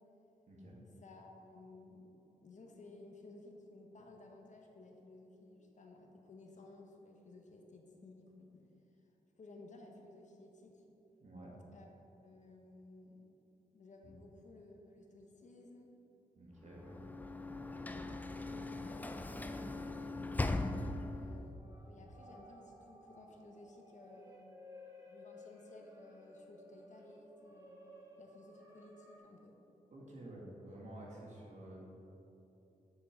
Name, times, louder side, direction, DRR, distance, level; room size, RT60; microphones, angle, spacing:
voice 1, 0.5-0.8 11.2-11.5 16.4-17.0 20.7-21.0 29.9-31.8, right 1 dB, 55° right, -3 dB, 1.9 m, -51 dB
voice 2, 1.0-2.1 2.4-8.6 9.4-10.8 11.7-11.9 12.2-13.2 13.7-15.9 16.9-17.4 17.9-20.2 21.2-24.4 25.1-27.8 28.2-29.5, left 2 dB, 55° left, 1 dB, 1.1 m, -56 dB
Sliding door / Slam, 16.7-21.4, left 2 dB, 10° left, 0.3 m, -39 dB
sound 1, 18.8-29.2, left 1 dB, 20° right, 1.3 m, -59 dB
8.2 x 6.7 x 5.1 m, 3.0 s
wide cardioid pair, 145°, 15 cm